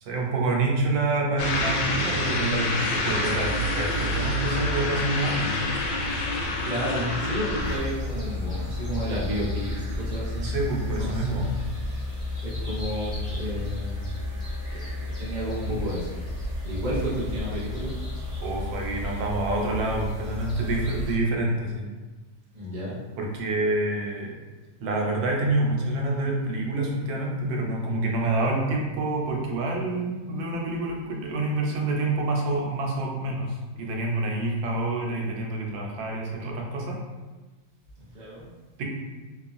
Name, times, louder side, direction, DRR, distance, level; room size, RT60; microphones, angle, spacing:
voice 1, 0.0-5.7 10.4-11.5 18.4-21.9 23.2-24.3 24.8-37.0 38.8-38.9, right 2 dB, 85° right, -1 dB, 1.3 m, -27 dB
sound 1, 1.4-7.8, left 2 dB, 80° left, 1.2 m, -27 dB
voice 2, 6.6-11.5 12.4-14.2 14.7-16.1 16.6-18.0 22.5-23.0 38.0-38.5, equal, 55° right, -7 dB, 0.5 m, -32 dB
sound 2, 7.6-21.1, left 2 dB, 5° right, 0.7 m, -32 dB
2.9 x 2.3 x 2.4 m, 1.2 s
omnidirectional pair, 2.0 m